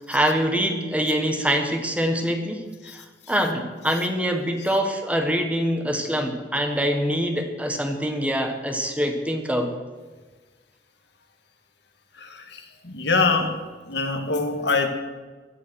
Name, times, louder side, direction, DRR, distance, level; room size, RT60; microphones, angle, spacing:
voice 1, 0.0-3.0 3.3-9.7, equal, 5° right, 4 dB, 1.6 m, -24 dB
voice 2, 12.2-13.5 13.9-14.9, left 3 dB, 65° left, 5 dB, 2.1 m, -24 dB
16.5 x 12.0 x 6.4 m, 1.3 s
head